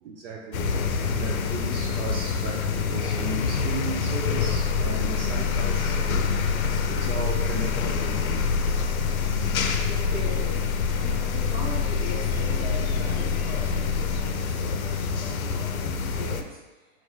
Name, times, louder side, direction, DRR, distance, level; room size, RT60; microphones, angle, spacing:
voice 1, 0.0-6.2 6.8-8.5 11.2-11.3, right 3 dB, 55° right, 0 dB, 0.6 m, -36 dB
sound 1, 0.5-16.4, left 5 dB, 85° left, 0.5 m, -27 dB
sound 2, 4.3-14.3, left 7 dB, 45° left, 0.8 m, -30 dB
voice 2, 9.3-16.9, equal, 15° right, -6 dB, 0.9 m, -39 dB
4.2 x 2.6 x 3.2 m, 1.2 s
hypercardioid pair, 120°, 41 cm